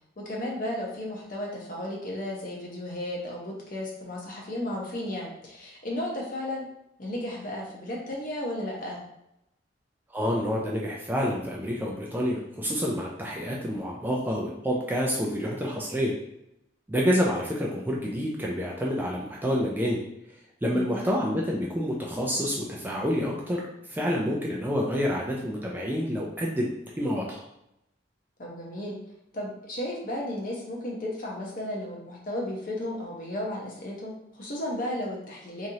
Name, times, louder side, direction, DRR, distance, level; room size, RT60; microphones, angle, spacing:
voice 1, 0.2-6.7 7.0-9.0 20.7-21.0 28.4-29.0 29.3-35.7, left 1 dB, 45° left, -2 dB, 0.8 m, -34 dB
voice 2, 10.1-16.1 16.9-20.0 20.6-23.6 23.9-26.7 27.0-27.4, equal, 10° right, -2 dB, 0.3 m, -28 dB
3.0 x 2.5 x 2.7 m, 0.81 s
head